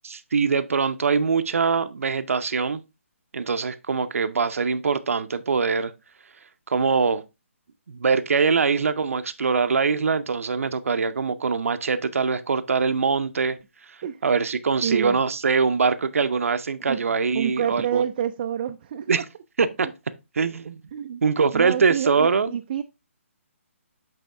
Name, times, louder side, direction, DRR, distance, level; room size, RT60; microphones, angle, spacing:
voice 1, 0.0-2.8 3.3-5.9 6.7-7.2 7.9-13.6 14.2-18.0 19.1-19.2 19.6-19.9 20.4-20.8 21.2-22.5, right 5 dB, 75° right, 0.6 m, -23 dB
voice 2, 14.8-15.2 16.9-19.2 19.8-19.9 20.9-21.2 21.5-22.8, right 9 dB, 35° right, 0.3 m, -28 dB
8.2 x 3.5 x 3.4 m
hypercardioid pair, 155°, 7 cm